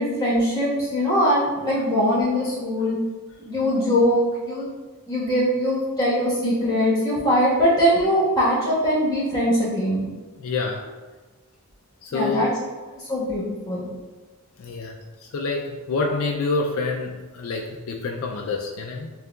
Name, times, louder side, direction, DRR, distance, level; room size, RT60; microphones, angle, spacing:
voice 1, 0.0-3.0 3.4-4.7 5.1-10.0 12.1-12.5 12.9-13.8, equal, 15° left, -8 dB, 1.3 m, -22 dB
voice 2, 10.4-10.8 12.0-12.5 14.6-15.0 15.3-19.1, left 3 dB, 70° left, 0 dB, 0.4 m, -27 dB
6.4 x 2.3 x 2.3 m, 1.3 s
head